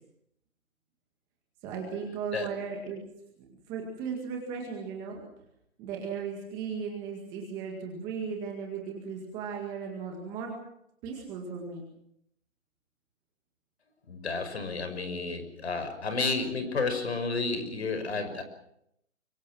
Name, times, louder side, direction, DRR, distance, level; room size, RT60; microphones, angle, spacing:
voice 1, 1.6-3.0 3.5-5.2 5.8-10.6 11.0-11.8, right 6 dB, 10° right, 1 dB, 2.0 m, -36 dB
voice 2, 14.1-18.4, left 3 dB, 50° left, 9 dB, 5.7 m, -31 dB
24.5 x 24.0 x 6.2 m, 0.76 s
hypercardioid pair, 170°, 40 cm